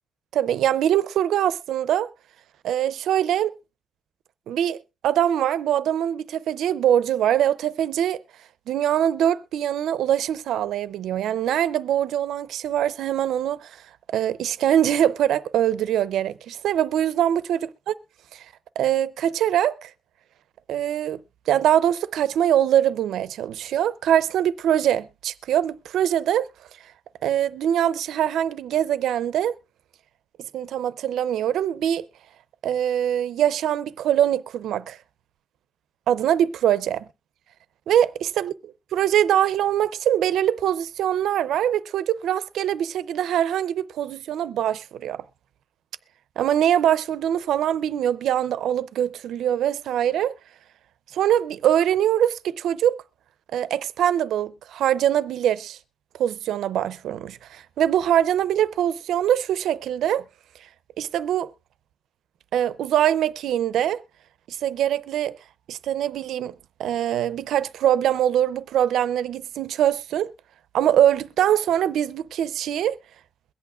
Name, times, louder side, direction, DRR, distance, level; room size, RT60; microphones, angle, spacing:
voice 1, 0.3-2.1 2.6-3.5 4.5-8.2 8.7-13.7 14.1-17.6 18.3-18.4 18.8-19.9 20.7-21.2 21.5-26.5 27.2-29.5 30.5-32.1 32.6-35.0 36.1-37.0 37.9-38.5 38.9-45.2 46.4-50.3 51.1-53.0 53.5-55.8 56.2-60.3 61.0-61.5 62.5-64.0 64.5-65.4 65.7-66.5 66.8-70.3 70.7-73.0, right 10 dB, 70° right, 0.5 m, -23 dB
22.5 x 8.4 x 2.5 m
cardioid pair, 140°, 0 cm